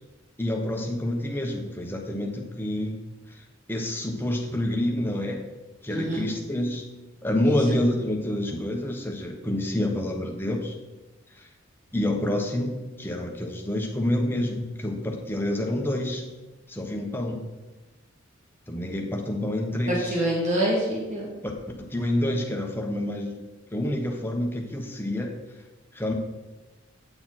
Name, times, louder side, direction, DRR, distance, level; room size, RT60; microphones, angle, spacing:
voice 1, 0.4-3.0 3.3-3.4 3.7-5.4 5.8-6.8 7.2-10.7 11.3-11.5 11.9-16.2 16.7-17.4 18.7-20.2 21.8-23.3 23.7-25.3 25.9-26.1, left 1 dB, 10° left, 1 dB, 1.0 m, -28 dB
voice 2, 5.9-6.3 7.4-7.8 19.9-21.3, right 1 dB, 35° right, -4 dB, 2.3 m, -26 dB
8.9 x 6.9 x 4.2 m, 1.1 s
head